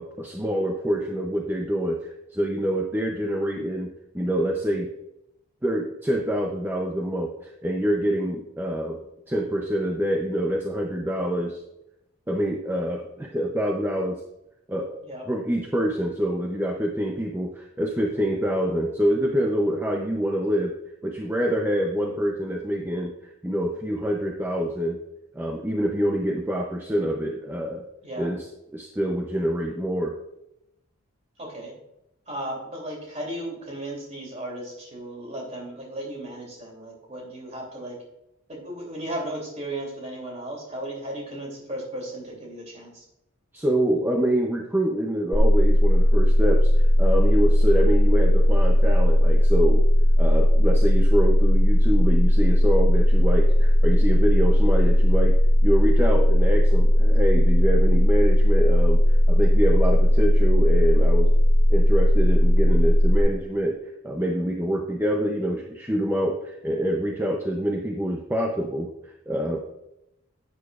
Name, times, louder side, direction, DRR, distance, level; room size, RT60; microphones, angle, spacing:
voice 1, 0.0-3.9 4.1-4.9 5.6-9.0 9.3-11.6 12.3-14.2 14.7-20.7 21.0-25.0 25.3-27.8 28.2-28.5 28.7-30.2 43.5-49.8 50.2-55.4 55.6-61.3 61.7-63.8 64.0-69.6, equal, 10° right, 1 dB, 0.6 m, -26 dB
voice 2, 31.4-31.7 32.3-38.0 38.5-43.0, right 1 dB, 30° right, -1 dB, 2.8 m, -35 dB
sound 1, 45.3-63.2, equal, 40° left, 2.2 m, -17 dB
11.5 x 8.4 x 2.4 m, 0.85 s
head